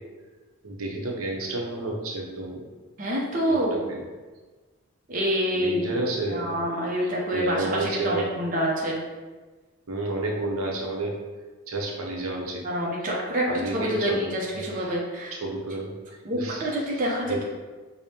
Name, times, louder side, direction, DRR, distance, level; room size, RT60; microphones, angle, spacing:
voice 1, 0.6-2.6 3.5-3.6 3.9-4.0 5.6-6.7 7.0-8.3 9.9-11.2 11.7-12.6 13.5-14.3 14.8-14.9 15.3-15.9 16.3-16.7, right 2 dB, 85° right, -1 dB, 0.6 m, -30 dB
voice 2, 3.0-3.8 5.1-6.0 6.3-9.0 12.6-15.3 16.2-17.4, equal, 40° right, -3 dB, 0.5 m, -27 dB
5.0 x 2.1 x 2.7 m, 1.3 s
head